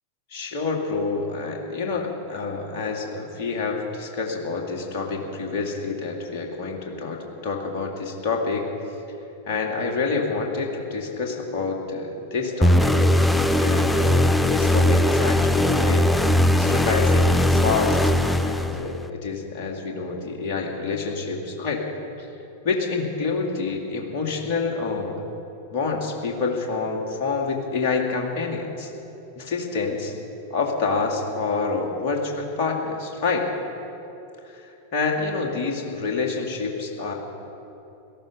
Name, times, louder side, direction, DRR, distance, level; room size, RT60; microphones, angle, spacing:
voice 1, 0.3-8.7 9.5-13.0 13.5-16.2 16.6-18.0 18.4-21.8 22.2-22.3 22.6-25.2 25.7-28.9 29.4-30.1 30.5-33.5 34.5-37.1, left 4 dB, 45° left, 0 dB, 2.4 m, -27 dB
sound 1, 12.6-19.1, left 1 dB, 5° left, 0.6 m, -19 dB
17.5 x 13.5 x 5.5 m, 2.9 s
figure-of-eight pair, 90°, 0 cm